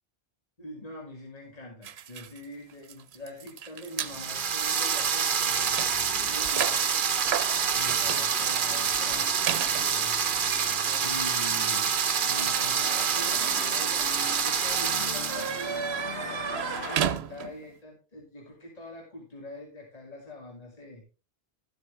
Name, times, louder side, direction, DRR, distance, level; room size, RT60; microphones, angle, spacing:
voice 1, 0.6-6.8 7.7-10.3 11.0-11.9 12.2-21.0, left 1 dB, 40° left, -1 dB, 2.5 m, -44 dB
sound 1, 1.8-4.2 4.9-5.0 5.3-17.7, right 9 dB, 85° right, 0.9 m, -36 dB
sound 2, 4.0-17.0, left 5 dB, 85° left, 1.1 m, -44 dB
sound 3, 4.0-15.7, right 7 dB, 55° right, 0.9 m, -27 dB
13.0 x 7.8 x 3.3 m, 0.31 s
omnidirectional pair, 1.0 m